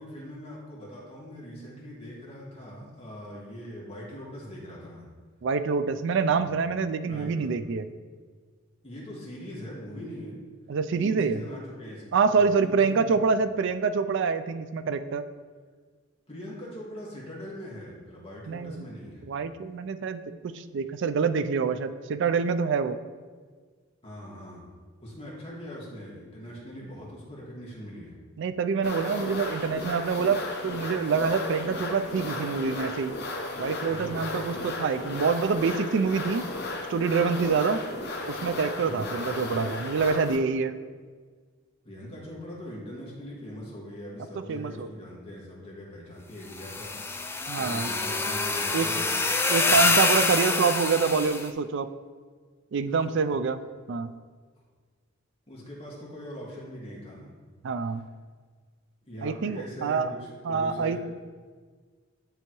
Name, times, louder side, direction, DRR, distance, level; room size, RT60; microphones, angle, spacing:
voice 1, 0.0-5.1 6.2-6.5 7.0-7.5 8.8-10.4 11.0-13.2 16.3-19.2 24.0-24.7 25.0-28.1 33.9-34.4 38.8-39.2 41.8-50.0 52.9-53.2 55.5-57.3 57.8-57.9 59.1-61.0, equal, 30° left, -6 dB, 1.8 m, -42 dB
voice 2, 5.4-7.9 10.7-11.4 12.1-15.2 18.5-18.9 19.3-23.0 28.4-33.1 33.6-36.4 36.9-37.8 38.3-40.8 44.4-44.9 47.5-47.9 48.7-48.9 49.5-51.9 52.7-53.6 53.9-54.1 57.6-58.0 59.2-60.1 60.4-61.0, right 5 dB, 60° right, 11 dB, 0.4 m, -26 dB
sound 1, 28.8-40.4, left 2 dB, 55° left, 0.8 m, -35 dB
sound 2, 46.5-51.4, left 3 dB, 10° left, 0.3 m, -26 dB
10.0 x 3.5 x 3.0 m, 1.5 s
head